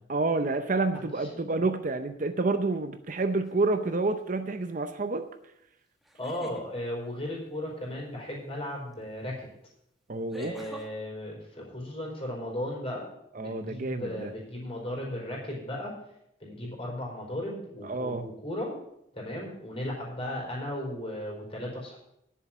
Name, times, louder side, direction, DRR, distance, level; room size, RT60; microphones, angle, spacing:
voice 1, 0.1-5.2 10.1-10.5 13.3-14.3 17.8-18.3, right 3 dB, 40° right, 8 dB, 0.6 m, -29 dB
voice 2, 1.2-1.6 6.2-9.5 10.3-13.1 13.3-15.9 16.4-18.7 19.1-22.0, left 1 dB, 30° left, -2 dB, 4.5 m, -36 dB
sound 1, 3.4-3.9 6.0-6.7 8.9-9.0 10.3-10.9, equal, ahead, 1.2 m, -45 dB
10.5 x 7.3 x 7.1 m, 0.78 s
head